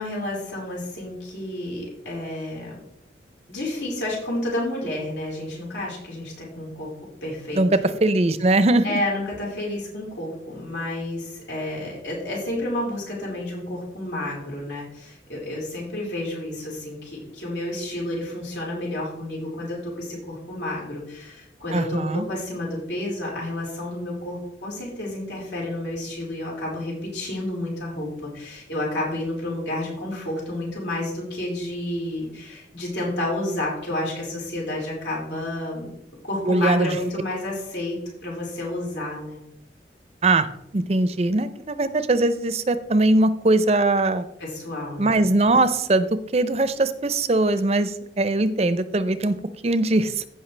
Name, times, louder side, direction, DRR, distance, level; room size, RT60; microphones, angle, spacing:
voice 1, 0.0-2.7 3.5-6.9 7.2-7.9 8.8-35.9 36.2-39.4 44.4-45.1, left 1 dB, 85° left, -4 dB, 4.2 m, -30 dB
voice 2, 7.5-9.0 21.7-22.2 36.4-36.9 40.2-40.5 40.7-44.2 45.0-46.1 46.3-49.4 49.6-50.2, right 2 dB, 35° right, 13 dB, 0.5 m, -21 dB
15.5 x 5.5 x 3.3 m, 0.78 s
head